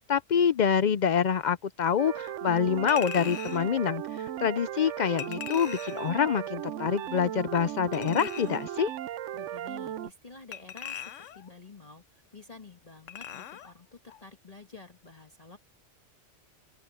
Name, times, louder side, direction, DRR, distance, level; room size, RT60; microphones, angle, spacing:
voice 1, 0.1-8.9, left 7 dB, 60° left, 0.5 m, -26 dB
sound 1, 2.0-10.1, right 11 dB, 85° right, 1.0 m, -36 dB
Chink clink, 2.9-3.7 5.2-6.1 7.9-8.7 10.5-11.5 13.1-13.7 14.1-14.2, left 10 dB, 90° left, 1.1 m, -40 dB
voice 2, 9.3-15.6, left 4 dB, 30° left, 1.6 m, -50 dB
open air
omnidirectional pair, 1.2 m